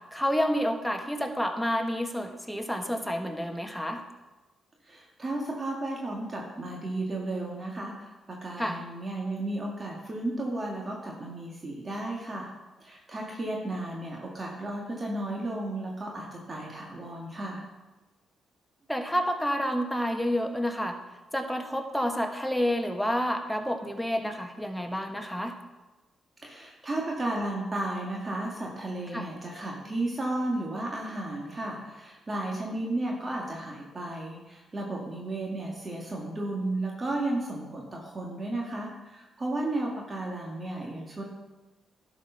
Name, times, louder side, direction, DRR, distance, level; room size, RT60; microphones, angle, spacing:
voice 1, 0.1-4.0 8.6-8.8 18.9-21.0 21.3-25.5 29.1-29.3, equal, 5° left, 5 dB, 1.3 m, -29 dB
voice 2, 4.8-12.5 12.8-17.6 26.4-41.2, right 2 dB, 35° right, -2 dB, 1.9 m, -33 dB
11.0 x 5.0 x 5.7 m, 1.1 s
supercardioid pair, 55°, 0 cm